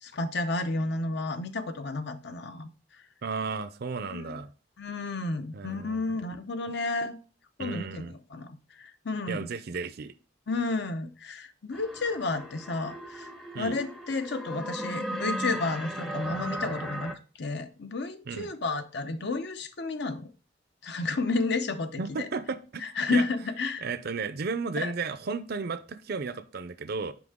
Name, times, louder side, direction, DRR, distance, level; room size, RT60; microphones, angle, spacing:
voice 1, 0.0-2.7 4.1-4.4 4.8-7.2 7.6-9.5 10.5-13.3 13.6-17.1 17.4-20.3 20.8-22.3 22.8-23.9 24.8-24.9, left 3 dB, 65° left, 9 dB, 0.8 m, -31 dB
voice 2, 3.2-4.5 5.5-6.2 7.6-8.1 9.3-10.1 13.5-13.8 18.3-18.5 22.0-22.8 23.1-23.2 23.8-27.1, right 4 dB, 55° right, 13 dB, 0.5 m, -34 dB
sound 1, 11.7-17.1, right 1 dB, ahead, 0.6 m, -36 dB
6.0 x 5.4 x 3.6 m, 0.36 s
head